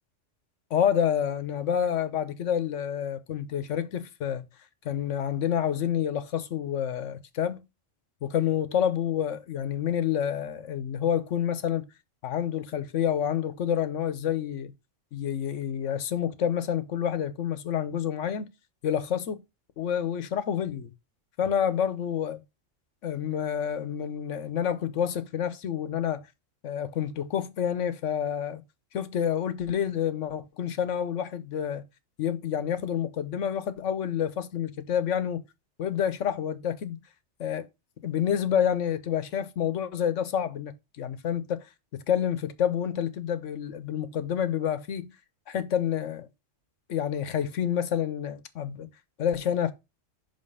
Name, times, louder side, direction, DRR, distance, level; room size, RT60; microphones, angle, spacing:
voice 1, 0.7-4.4 4.8-7.6 8.2-11.8 12.2-14.7 15.1-18.5 18.8-19.4 19.8-20.9 21.4-22.4 23.0-26.2 26.6-28.6 28.9-31.8 32.2-35.4 35.8-37.0 37.4-37.7 38.0-40.7 41.0-41.6 42.1-45.1 45.5-46.3 46.9-48.9 49.2-49.7, left 9 dB, 80° left, 1.2 m, -28 dB
6.0 x 5.4 x 5.5 m
omnidirectional pair, 1.3 m